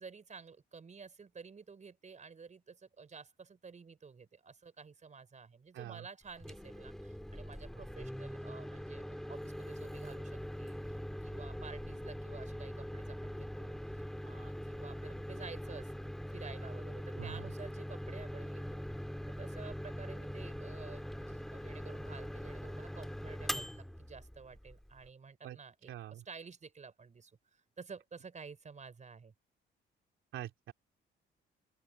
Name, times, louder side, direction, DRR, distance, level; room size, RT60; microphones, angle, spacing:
voice 1, 0.0-11.0 11.2-13.8 14.2-27.3 27.8-29.3, right 5 dB, 35° right, 5.0 m, -52 dB
voice 2, 5.7-6.0 17.2-17.5 25.4-25.6 25.9-26.2 30.3-30.7, right 12 dB, 80° right, 3.1 m, -44 dB
Microwave oven, 6.3-25.1, equal, ahead, 2.5 m, -42 dB
open air
cardioid pair, 90°, 20 cm